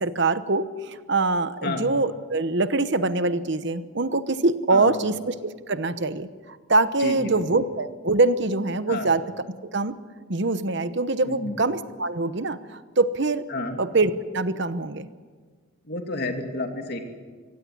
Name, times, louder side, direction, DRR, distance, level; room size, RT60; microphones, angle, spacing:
voice 1, 0.0-9.2 9.7-9.9 10.3-13.4 13.8-15.1, right 3 dB, 55° right, 12 dB, 1.0 m, -24 dB
voice 2, 4.7-5.1 7.0-7.5 8.9-9.1 11.2-11.6 13.5-13.8 15.8-17.0, left 2 dB, 50° left, 4 dB, 2.8 m, -30 dB
25.0 x 16.5 x 9.8 m, 1.5 s
head